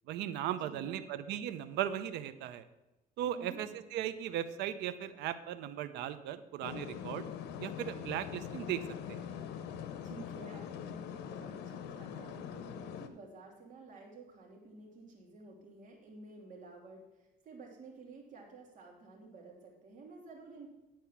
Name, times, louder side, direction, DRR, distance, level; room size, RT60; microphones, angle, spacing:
voice 1, 0.1-2.6 3.2-7.3 7.6-8.8 9.1-9.3, right 11 dB, 85° right, 12 dB, 0.7 m, -37 dB
voice 2, 0.6-1.1 3.3-3.6 10.0-20.7, right 3 dB, 50° right, -2 dB, 3.0 m, -52 dB
sound 1, 6.6-13.1, left 8 dB, 90° left, 0.7 m, -43 dB
10.0 x 4.5 x 7.2 m, 1.0 s
cardioid pair, 110°, 17 cm